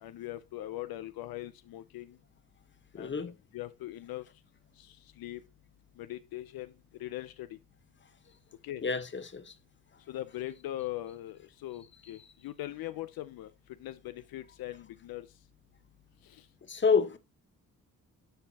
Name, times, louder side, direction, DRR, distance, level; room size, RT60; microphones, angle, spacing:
voice 1, 0.0-2.2 3.0-4.3 4.8-5.4 6.0-6.7 7.0-7.6 8.6-8.8 10.1-13.5 13.8-15.3 16.3-16.4, left 14 dB, 80° left, 0.5 m, -41 dB
voice 2, 2.9-3.3 8.8-9.5 16.7-17.2, left 5 dB, 30° left, 1.0 m, -28 dB
10.5 x 4.4 x 2.8 m
cardioid pair, 60°, 35 cm